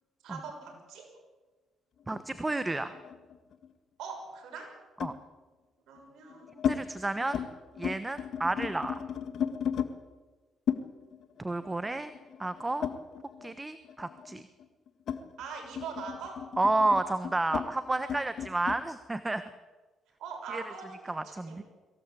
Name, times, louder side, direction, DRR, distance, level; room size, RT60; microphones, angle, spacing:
voice 1, 0.2-1.1 4.0-4.8 5.9-6.5 15.4-16.4 20.2-21.6, right 5 dB, 80° right, 3 dB, 6.5 m, -42 dB
sound 1, 2.1-3.7 5.0-5.2 6.0-6.8 7.1-7.5 7.7-9.9 10.7-13.5 13.8-18.8, left 8 dB, 65° left, 1.9 m, -35 dB
voice 2, 2.1-3.0 5.0-5.1 6.6-7.4 7.8-8.9 11.4-12.1 12.4-12.9 13.4-14.4 16.6-19.4 20.5-20.6 21.1-21.6, right 2 dB, 15° right, 12 dB, 1.2 m, -31 dB
23.5 x 17.0 x 8.6 m, 1.3 s
cardioid pair, 90°, 0 cm